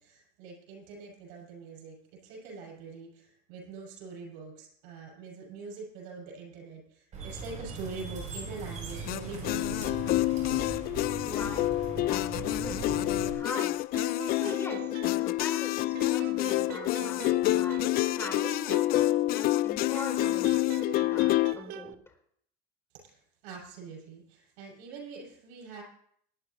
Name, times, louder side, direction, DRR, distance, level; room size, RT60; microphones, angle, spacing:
voice 1, 0.0-9.9 22.9-25.8, right 4 dB, 80° right, -1 dB, 6.6 m, -44 dB
sound 1, 7.1-13.3, right 4 dB, 35° right, 7.4 m, -40 dB
sound 2, 9.1-21.5, left 17 dB, 50° left, 0.4 m, -28 dB
voice 2, 11.2-11.7 12.0-13.8 14.1-17.2 17.5-17.8 18.1-18.6 19.3-20.6 21.0-22.1, left 2 dB, 15° left, 1 dB, 3.9 m, -41 dB
sound 3, 13.9-15.6 15.9-19.6 19.9-21.9, right 14 dB, 55° right, 0.6 m, -43 dB
23.5 x 10.0 x 3.0 m, 0.66 s
supercardioid pair, 115°, 20 cm